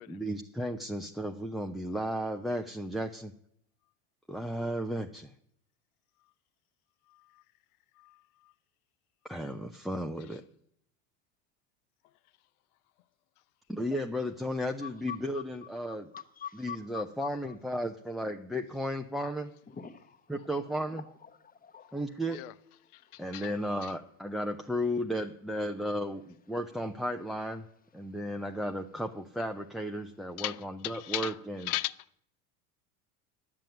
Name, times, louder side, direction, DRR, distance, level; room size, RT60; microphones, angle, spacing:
voice 1, 0.1-3.3 4.3-5.3 9.2-10.4 13.7-16.1 16.5-19.5 20.3-21.0 21.9-22.4 23.2-27.6 27.9-31.6, equal, ahead, 0.4 m, -34 dB
voice 2, 7.1-7.4 7.9-8.5 10.3-10.4 22.3-22.5 22.9-23.5 23.8-23.9 30.4-31.9, left 17 dB, 70° left, 0.8 m, -38 dB
voice 3, 14.8-15.4 15.9-17.3 19.7-20.2 20.9-21.0 21.4-22.0, left 8 dB, 20° left, 1.1 m, -44 dB
10.5 x 7.6 x 9.0 m
hypercardioid pair, 95°, 45 cm